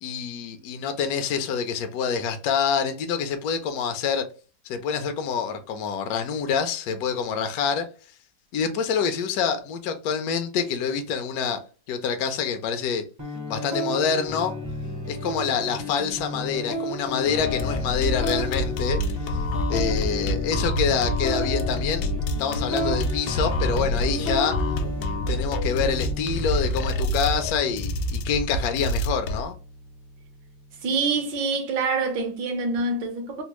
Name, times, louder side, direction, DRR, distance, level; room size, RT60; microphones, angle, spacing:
voice 1, 0.0-4.3 4.6-7.9 8.5-11.6 11.9-13.0 13.5-14.5 15.1-19.4 19.7-22.0 22.4-24.7 25.3-29.6, left 6 dB, 70° left, 0.9 m, -26 dB
sound 1, 13.2-31.2, left 2 dB, 25° right, 0.3 m, -33 dB
sound 2, 17.3-29.4, left 1 dB, 90° left, 1.4 m, -27 dB
voice 2, 30.8-33.4, right 4 dB, 75° right, 1.6 m, -26 dB
4.1 x 2.0 x 2.9 m
omnidirectional pair, 2.1 m